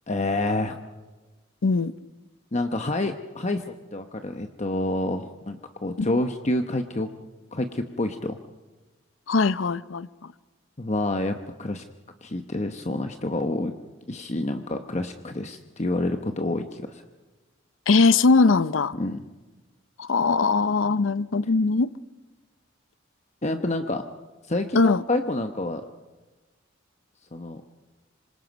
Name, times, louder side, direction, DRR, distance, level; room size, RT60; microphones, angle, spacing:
voice 1, 0.1-0.8 2.5-3.6 3.9-7.1 7.5-8.4 10.8-11.8 12.2-13.7 14.1-17.0 18.9-19.2 23.4-24.0 24.5-25.8 27.3-27.6, left 2 dB, 35° left, 1.0 m, -28 dB
voice 2, 1.6-1.9 6.0-6.2 9.3-10.3 17.9-18.9 20.0-21.9 24.7-25.0, left 4 dB, 90° left, 0.7 m, -21 dB
27.0 x 25.0 x 5.3 m
head